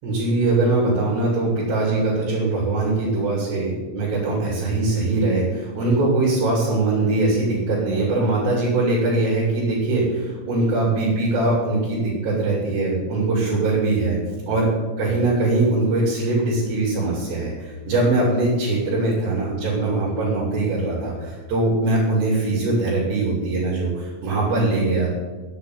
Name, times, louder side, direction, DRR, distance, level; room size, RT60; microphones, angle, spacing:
voice 1, 0.0-14.2 14.5-14.7 15.0-25.1, right 2 dB, 70° right, -6 dB, 5.3 m, -21 dB
10.5 x 8.4 x 9.6 m, 1.3 s
omnidirectional pair, 5.2 m